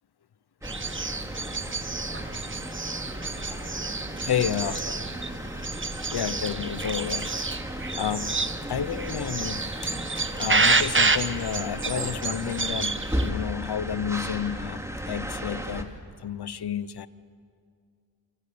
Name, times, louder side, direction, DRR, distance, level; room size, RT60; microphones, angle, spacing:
sound 1, 0.6-15.8, equal, 5° right, 2.7 m, -35 dB
sound 2, 0.6-13.3, right 3 dB, 30° right, 1.2 m, -29 dB
voice 1, 3.5-4.8 5.3-5.4 6.1-7.6 7.9-15.9 16.2-17.1, left 9 dB, 65° left, 16 dB, 0.9 m, -31 dB
28.5 x 24.0 x 6.9 m, 2.3 s
cardioid pair, 45°, 42 cm